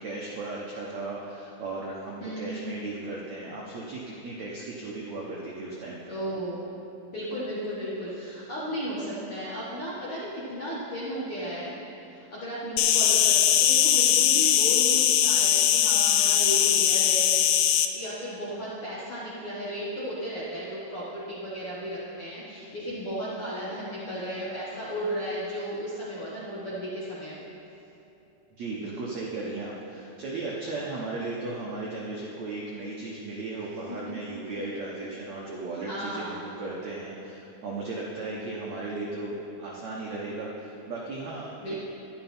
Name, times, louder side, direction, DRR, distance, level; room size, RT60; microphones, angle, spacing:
voice 1, 0.0-6.1 28.6-41.7, right 2 dB, 70° right, -4 dB, 1.7 m, -36 dB
voice 2, 2.2-2.7 6.1-6.6 7.1-11.7 12.1-27.4 33.9-34.1 34.4-34.6 35.8-36.5 41.6-41.7, equal, 50° left, -8 dB, 1.7 m, -34 dB
Insect, 12.8-17.9, left 11 dB, 80° left, 2.3 m, -21 dB
12.5 x 11.0 x 4.4 m, 3.0 s
omnidirectional pair, 4.7 m